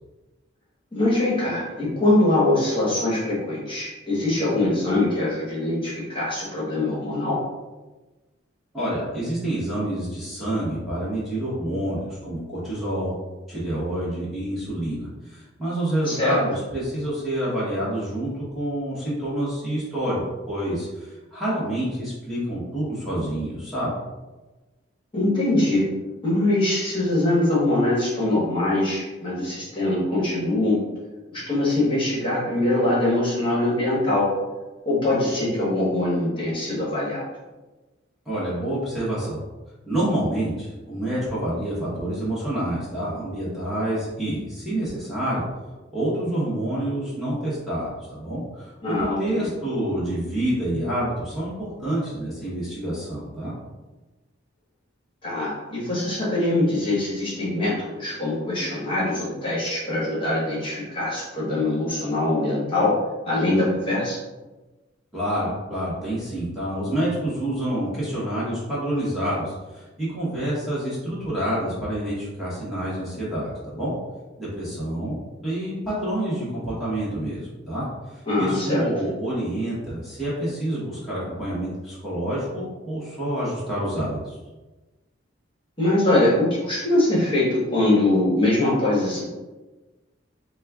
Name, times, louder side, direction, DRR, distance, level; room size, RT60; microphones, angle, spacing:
voice 1, 0.9-7.4 16.0-16.4 25.1-25.9 26.2-30.8 31.3-34.3 34.8-37.2 48.8-49.5 55.2-63.0 63.2-64.2 78.3-78.8 85.8-89.2, left 2 dB, 25° left, -7 dB, 1.1 m, -23 dB
voice 2, 8.7-13.1 13.5-20.2 20.4-24.0 38.2-39.4 39.9-45.4 45.9-53.5 65.1-73.9 74.4-84.4, right 1 dB, ahead, -10 dB, 1.1 m, -28 dB
4.1 x 2.3 x 3.5 m, 1.2 s
head